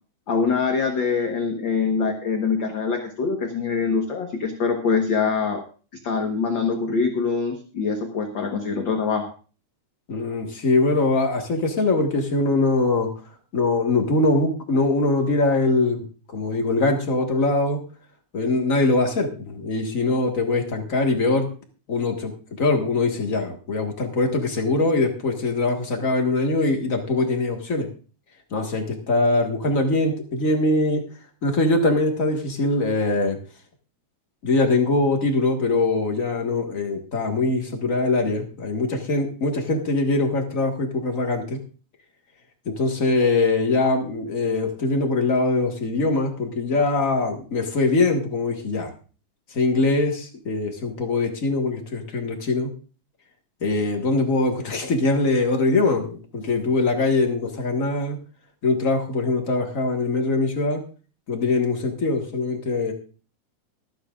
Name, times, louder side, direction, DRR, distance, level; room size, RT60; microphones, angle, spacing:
voice 1, 0.3-5.6 6.0-9.3, left 5 dB, 55° left, 3 dB, 1.5 m, -24 dB
voice 2, 10.1-13.1 13.5-17.8 18.3-21.5 21.9-22.3 22.6-27.9 28.5-31.0 31.4-33.4 34.4-41.6 42.6-48.9 49.5-52.7 53.6-58.2 58.6-60.8 61.3-62.9, left 2 dB, 35° left, 3 dB, 1.5 m, -22 dB
24.0 x 9.2 x 2.5 m, 0.37 s
omnidirectional pair, 3.7 m